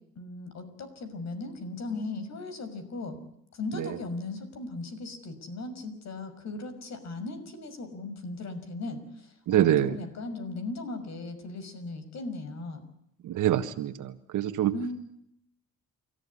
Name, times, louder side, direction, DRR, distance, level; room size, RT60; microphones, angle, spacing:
voice 1, 0.2-3.2 3.5-12.9 14.7-15.0, left 2 dB, 60° left, 9 dB, 6.0 m, -37 dB
voice 2, 9.5-9.9 13.2-14.7, right 11 dB, 80° right, 8 dB, 1.6 m, -25 dB
29.5 x 14.5 x 9.8 m, 0.75 s
cardioid pair, 90°, 30 cm